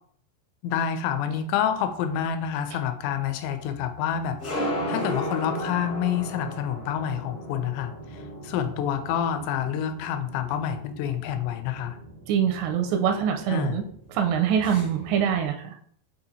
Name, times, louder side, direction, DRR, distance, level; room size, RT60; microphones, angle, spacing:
voice 1, 0.6-12.0 13.5-13.8, left 9 dB, 90° left, 7 dB, 2.8 m, -28 dB
sound 1, 1.7-15.5, equal, 60° left, 0.8 m, -37 dB
voice 2, 12.3-13.8 14.1-15.8, right 8 dB, 85° right, 4 dB, 2.7 m, -24 dB
6.9 x 2.8 x 2.6 m, 0.63 s
omnidirectional pair, 4.9 m